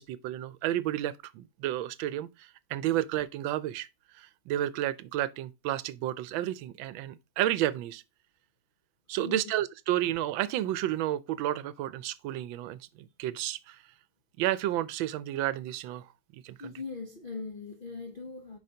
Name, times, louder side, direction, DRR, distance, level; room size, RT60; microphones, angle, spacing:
voice 1, 0.0-3.9 4.2-8.0 9.1-13.8 14.4-16.0 16.4-16.6, right 13 dB, 85° right, 1.3 m, -31 dB
voice 2, 9.2-9.5 16.6-18.6, left 4 dB, 60° left, 0.5 m, -40 dB
7.6 x 5.4 x 2.8 m
omnidirectional pair, 2.1 m